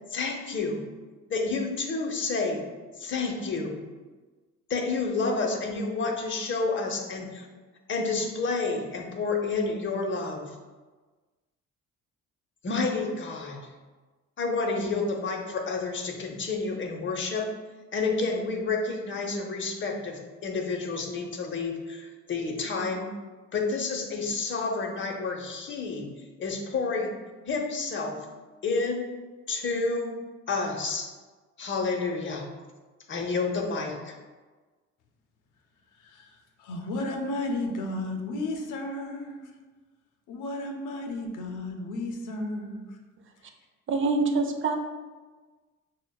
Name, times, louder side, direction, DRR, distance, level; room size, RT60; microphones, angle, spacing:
voice 1, 0.1-0.8 1.3-2.6 3.0-3.8 4.7-7.5 7.9-10.5 12.6-13.7 14.4-17.5 17.9-23.1 23.5-26.1 26.4-27.1 27.5-28.2 28.6-29.0 29.5-30.1 30.5-31.1 31.6-32.5 33.1-34.2, left 3 dB, 40° left, 2 dB, 0.7 m, -29 dB
voice 2, 36.0-39.5 40.3-43.0, left 2 dB, 85° left, 4 dB, 0.6 m, -33 dB
voice 3, 43.9-44.8, right 3 dB, 40° right, 5 dB, 0.5 m, -25 dB
6.2 x 2.1 x 2.2 m, 1.3 s
cardioid pair, 90°, 30 cm